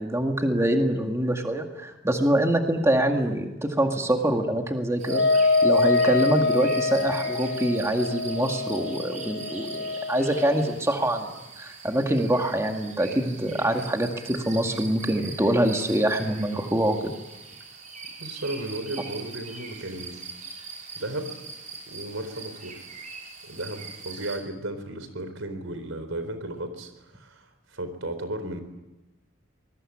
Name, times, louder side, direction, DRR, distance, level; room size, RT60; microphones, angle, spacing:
voice 1, 0.0-5.2 5.6-11.3 11.6-17.1, right 1 dB, 15° right, 3 dB, 2.1 m, -25 dB
sound 1, 5.0-24.4, right 4 dB, 40° right, 6.1 m, -42 dB
Wind instrument woodwind instrument, 5.1-10.7, left 3 dB, 85° left, 1.2 m, -25 dB
voice 2, 18.2-20.2 21.0-21.4 21.9-22.8 23.4-28.6, right 1 dB, 90° right, 10 dB, 4.3 m, -34 dB
25.5 x 21.5 x 8.7 m, 1.0 s
head